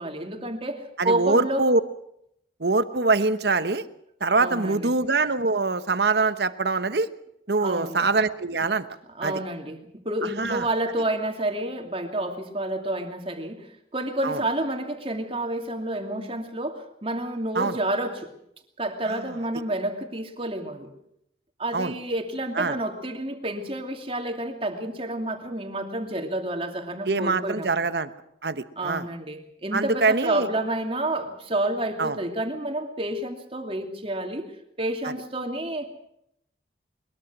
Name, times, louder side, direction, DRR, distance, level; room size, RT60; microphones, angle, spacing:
voice 1, 0.0-1.7 4.4-4.9 7.6-8.1 9.1-18.3 18.8-20.9 21.6-27.9 28.8-34.5 34.8-35.9, right 1 dB, 30° right, 5 dB, 2.6 m, -29 dB
voice 2, 1.0-1.8 2.6-3.8 4.2-7.1 7.5-8.9 9.2-9.4 10.2-10.7 14.2-14.4 17.5-17.8 19.1-19.2 21.7-21.9 22.6-22.8 27.1-28.1 28.4-29.1 29.7-30.5 32.0-32.2 35.0-35.1, right 3 dB, 65° right, 12 dB, 1.1 m, -24 dB
22.0 x 21.5 x 6.2 m, 0.76 s
head